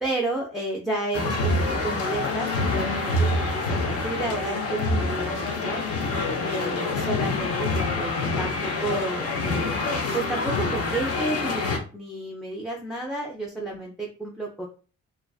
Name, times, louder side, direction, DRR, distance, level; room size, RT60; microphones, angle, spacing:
voice 1, 0.0-5.8 6.4-9.8 10.1-14.7, right 2 dB, ahead, -2 dB, 0.4 m, -31 dB
sound 1, 1.1-11.8, left 2 dB, 50° left, 0.6 m, -26 dB
2.3 x 2.3 x 2.3 m, 0.36 s
cardioid pair, 90°, 30 cm